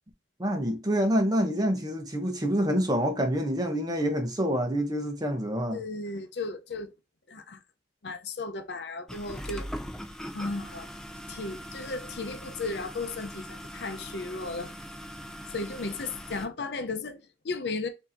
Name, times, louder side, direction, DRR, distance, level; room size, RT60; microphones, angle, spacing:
voice 1, 0.4-5.8, equal, 25° right, 0.8 m, -27 dB
voice 2, 5.7-6.9 7.3-7.6 8.0-9.7 10.3-10.9 11.3-14.7 15.5-17.9, left 3 dB, 70° left, 0.6 m, -35 dB
sound 1, 9.1-16.5, equal, 5° left, 0.4 m, -41 dB
4.6 x 2.8 x 2.6 m
head